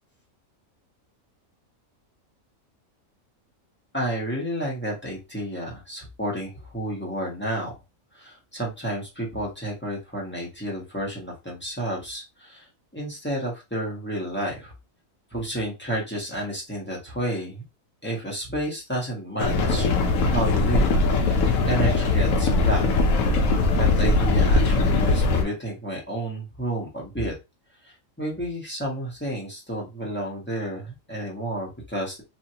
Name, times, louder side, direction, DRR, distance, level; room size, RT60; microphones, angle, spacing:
voice 1, 3.9-7.7 8.1-12.7 12.9-14.7 15.3-17.6 18.0-19.9 20.2-22.9 23.8-27.3 27.8-32.2, right 1 dB, 10° left, -3 dB, 1.0 m, -31 dB
sound 1, 19.4-25.4, left 3 dB, 80° left, 1.1 m, -20 dB
3.0 x 2.7 x 2.7 m, 0.24 s
omnidirectional pair, 1.4 m